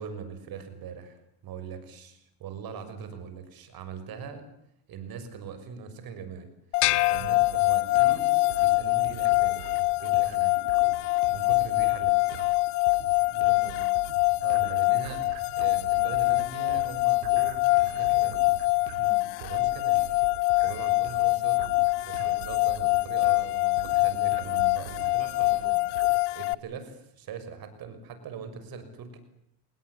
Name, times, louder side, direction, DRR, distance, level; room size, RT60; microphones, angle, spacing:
voice 1, 0.0-4.5 4.9-6.5 7.1-9.6 10.0-10.6 11.3-12.4 14.4-18.4 19.4-20.0 20.6-21.7 22.0-25.2 26.3-29.2, right 6 dB, 50° right, 9 dB, 6.4 m, -41 dB
sound 1, 6.7-26.5, left 24 dB, 90° left, 1.0 m, -24 dB
sound 2, 6.8-8.3, left 20 dB, 65° left, 1.3 m, -29 dB
sound 3, 6.8-26.2, right 11 dB, 90° right, 2.5 m, -45 dB
voice 2, 13.3-14.0 19.0-19.3 22.2-22.3 25.1-25.8, right 5 dB, 35° right, 5 dB, 4.5 m, -45 dB
25.5 x 20.0 x 9.9 m, 0.73 s
supercardioid pair, 110°, 44 cm